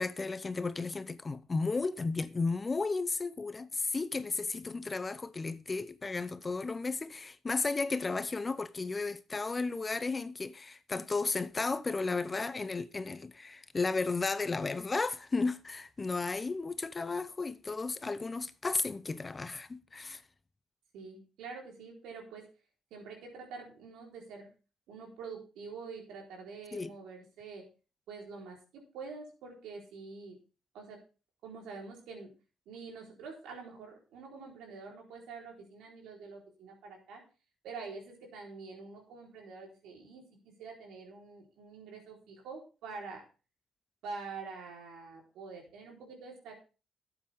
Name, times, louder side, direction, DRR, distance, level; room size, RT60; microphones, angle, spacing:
voice 1, 0.0-20.2 26.7-26.9, left 3 dB, 25° left, 0.7 m, -34 dB
voice 2, 20.9-22.4 22.9-24.5 24.9-27.7 28.1-30.4 30.7-31.0 31.4-32.3 32.7-37.2 37.6-43.2 44.0-46.5, right 4 dB, 85° right, 3.9 m, -46 dB
12.0 x 8.0 x 3.5 m
cardioid pair, 90°, 0 cm